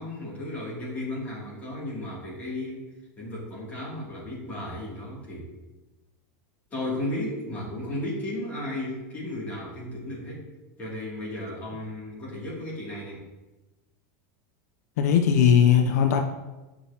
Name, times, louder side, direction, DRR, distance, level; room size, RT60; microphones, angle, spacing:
voice 1, 0.0-2.9 3.2-5.5 6.7-10.4 10.8-13.2, left 1 dB, 20° left, -7 dB, 2.5 m, -34 dB
voice 2, 15.0-16.2, left 8 dB, 75° left, 4 dB, 0.6 m, -19 dB
9.5 x 6.0 x 2.8 m, 1.1 s
supercardioid pair, 170°, 9 cm